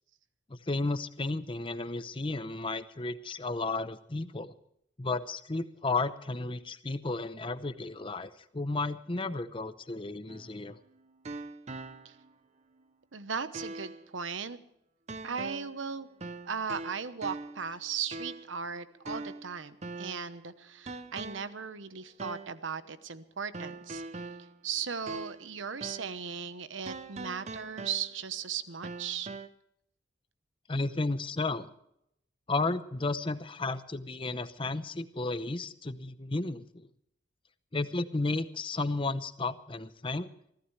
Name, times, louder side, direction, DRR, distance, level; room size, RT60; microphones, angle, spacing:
voice 1, 0.5-4.5 5.0-10.8 30.7-31.7 32.5-36.9 37.7-40.3, left 3 dB, 25° left, 12 dB, 0.8 m, -33 dB
sound 1, 10.3-12.3 12.8-12.9 13.5-14.1 15.1-15.8 16.2-17.7 18.1-18.6 19.0-20.3 20.9-21.6 22.2-22.6 23.5-25.5 25.8-26.2 26.9-28.4 28.8-29.5, right 3 dB, 35° right, 0.7 m, -42 dB
voice 2, 13.1-14.6 15.2-16.1 16.4-24.3 24.6-29.3, right 6 dB, 85° right, 12 dB, 1.0 m, -37 dB
24.0 x 15.5 x 3.3 m, 0.76 s
head